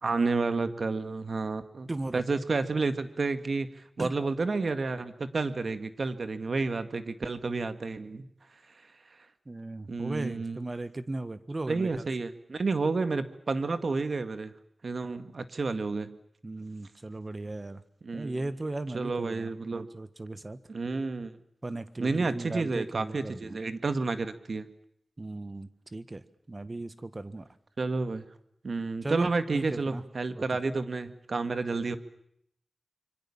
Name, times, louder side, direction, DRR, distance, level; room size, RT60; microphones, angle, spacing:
voice 1, 0.0-3.7 4.0-8.3 9.9-10.6 11.7-14.5 14.8-16.2 18.0-18.4 18.9-19.9 20.7-21.3 22.0-24.7 27.8-28.3 28.6-32.0, right 3 dB, 65° right, 11 dB, 2.0 m, -30 dB
voice 2, 1.9-2.2 4.0-4.2 9.4-12.0 16.4-17.8 18.1-20.6 21.6-23.6 25.2-27.5 29.0-30.0 30.3-30.4, right 2 dB, 35° right, 13 dB, 1.7 m, -37 dB
26.0 x 24.5 x 7.3 m, 0.73 s
cardioid pair, 60°, 0 cm